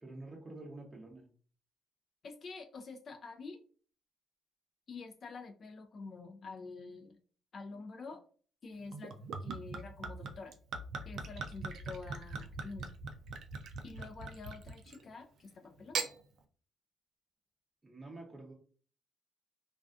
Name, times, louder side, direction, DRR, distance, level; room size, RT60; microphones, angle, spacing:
voice 1, 0.0-1.3 17.8-18.5, right 2 dB, 20° right, -1 dB, 0.6 m, -48 dB
voice 2, 2.2-3.6 4.9-7.2 7.5-8.2 8.6-10.6 11.1-12.9 13.8-16.1, left 4 dB, 50° left, 5 dB, 0.3 m, -47 dB
Gurgling / Chink clink / Liquid, 8.9-15.1 15.7-16.1, right 4 dB, 70° right, 0.4 m, -41 dB
2.3 x 2.3 x 2.4 m, 0.42 s
cardioid pair, 90°, 0 cm